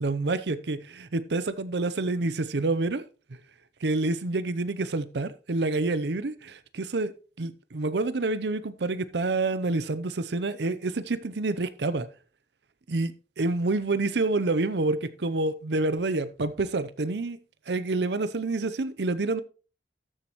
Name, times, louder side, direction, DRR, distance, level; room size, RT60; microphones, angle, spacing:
voice 1, 0.0-3.0 3.3-3.4 3.8-12.1 12.9-17.4 17.7-19.4, right 3 dB, 80° right, 0.7 m, -28 dB
13.0 x 7.4 x 3.0 m
head